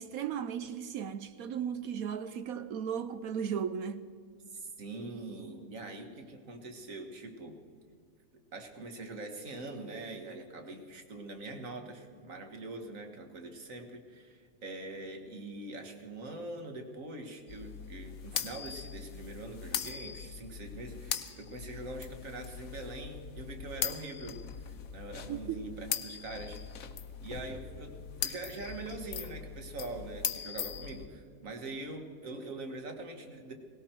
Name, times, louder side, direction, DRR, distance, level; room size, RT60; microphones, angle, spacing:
voice 1, 0.0-4.1 25.3-25.7, right 8 dB, 70° right, 0.9 m, -36 dB
voice 2, 4.5-7.6 8.5-26.6 27.2-33.5, right 2 dB, 50° right, 1.9 m, -43 dB
sound 1, 17.5-31.1, left 8 dB, 60° left, 1.1 m, -40 dB
18.5 x 17.5 x 4.5 m
omnidirectional pair, 1.8 m